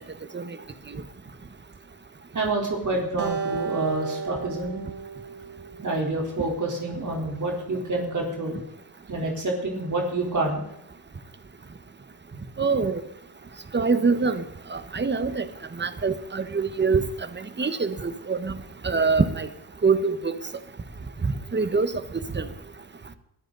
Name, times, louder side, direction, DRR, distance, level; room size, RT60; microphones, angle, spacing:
voice 1, 2.3-4.8 5.8-8.6 9.1-10.6, right 2 dB, 45° right, -1 dB, 3.9 m, -27 dB
Acoustic guitar, 3.2-6.5, right 6 dB, 90° right, 3.0 m, -34 dB
voice 2, 12.6-13.0 13.7-14.4 14.7-15.4 15.8-17.0 17.6-18.6 18.8-19.5 19.8-20.3 21.2-21.9 22.3-22.5, right 4 dB, 25° right, 11 dB, 1.3 m, -24 dB
21.5 x 14.0 x 4.0 m, 0.81 s
wide cardioid pair, 105°, 40 cm